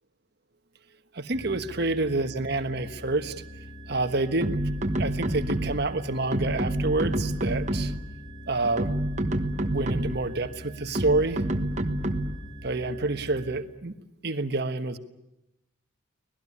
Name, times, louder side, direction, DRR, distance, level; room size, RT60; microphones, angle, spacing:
voice 1, 1.1-3.4 3.9-4.6 5.0-7.9 8.5-8.9 9.6-11.4 12.6-13.9 14.2-15.0, right 2 dB, 55° right, 9 dB, 1.3 m, -28 dB
sound 1, 1.3-13.6, equal, 25° left, 3.4 m, -44 dB
sound 2, 4.4-5.9 6.3-8.1 8.6-10.3 10.9-12.5, right 1 dB, 35° right, 1.3 m, -28 dB
25.0 x 18.5 x 9.9 m, 0.91 s
head